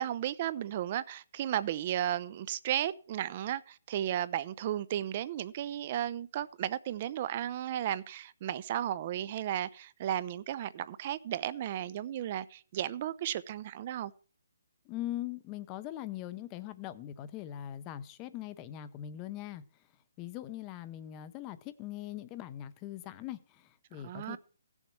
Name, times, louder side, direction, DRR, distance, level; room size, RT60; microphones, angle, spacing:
voice 1, 0.0-14.1 24.0-24.4, right 11 dB, 35° right, 0.6 m, -34 dB
voice 2, 14.8-19.6 20.2-24.4, left 12 dB, 20° left, 0.7 m, -41 dB
16.0 x 7.2 x 4.7 m
hypercardioid pair, 155°, 0 cm